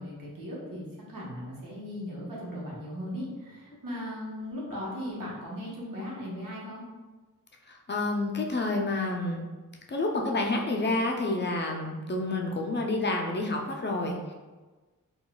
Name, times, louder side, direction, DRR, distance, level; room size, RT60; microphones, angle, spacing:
voice 1, 0.0-6.8, equal, 75° right, -5 dB, 1.0 m, -38 dB
voice 2, 7.7-9.4 9.9-14.3, left 2 dB, 35° left, 0 dB, 0.4 m, -29 dB
3.8 x 2.3 x 2.2 m, 1.3 s
cardioid pair, 70°, 33 cm